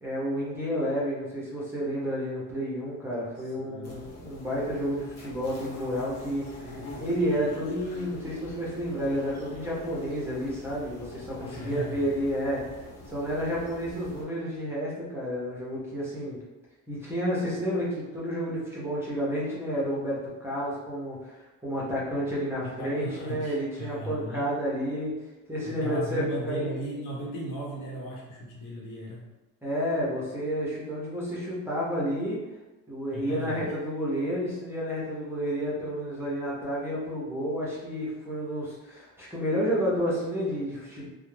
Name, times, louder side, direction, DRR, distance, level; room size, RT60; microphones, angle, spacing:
voice 1, 0.0-12.6 13.1-16.4 16.9-25.1 25.5-26.7 29.6-32.4 32.9-41.1, equal, 5° right, -7 dB, 0.5 m, -30 dB
voice 2, 3.6-4.1 11.4-12.1 22.6-24.5 25.6-29.2 33.1-33.7, right 1 dB, 80° left, -4 dB, 0.9 m, -37 dB
sound 1, 3.8-14.2, left 2 dB, 50° left, 0.6 m, -44 dB
2.3 x 2.0 x 3.1 m, 1.1 s
cardioid pair, 160°, 34 cm